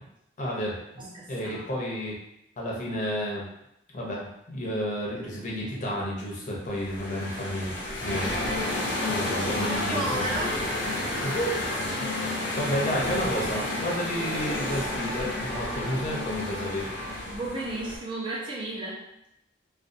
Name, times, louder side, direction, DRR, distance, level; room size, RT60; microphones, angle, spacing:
voice 1, 0.4-2.2 2.6-3.5 3.9-8.8 9.1-10.3 11.2-11.5 12.0-16.9, equal, 45° left, -3 dB, 0.6 m, -31 dB
voice 2, 1.0-1.8 9.7-10.6 14.5-14.7 17.3-19.1, right 2 dB, 30° right, -5 dB, 0.6 m, -34 dB
sound 1, 6.6-18.0, left 1 dB, 85° left, 0.6 m, -31 dB
2.4 x 2.3 x 2.5 m, 0.82 s
head